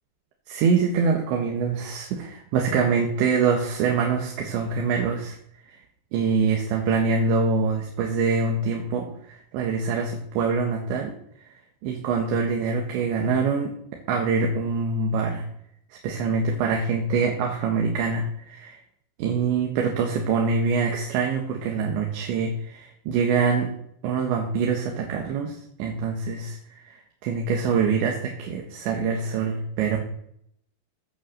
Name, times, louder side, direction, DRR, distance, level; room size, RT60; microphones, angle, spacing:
voice 1, 0.5-5.4 5.7-5.8 6.1-11.1 11.8-13.7 14.1-15.5 16.0-18.8 19.2-23.7 24.0-27.0 27.2-30.0, right 5 dB, 75° right, 1 dB, 3.7 m, -24 dB
15.0 x 8.8 x 6.5 m, 0.71 s
omnidirectional pair, 5.3 m